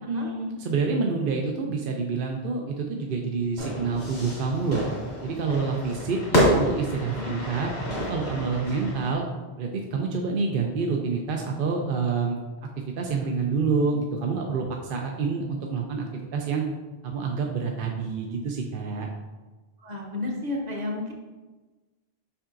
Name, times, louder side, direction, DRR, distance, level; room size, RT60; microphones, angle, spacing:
voice 1, 0.1-4.8 5.2-9.2 9.6-12.4 13.0-16.6 17.0-19.1, right 4 dB, 60° right, 1 dB, 0.7 m, -27 dB
Fire / Fireworks, 3.6-9.1, equal, 80° left, 2.2 m, -28 dB
voice 2, 6.9-7.3 19.8-21.1, left 2 dB, 45° right, 0 dB, 1.1 m, -32 dB
7.0 x 5.5 x 2.5 m, 1.2 s
omnidirectional pair, 1.1 m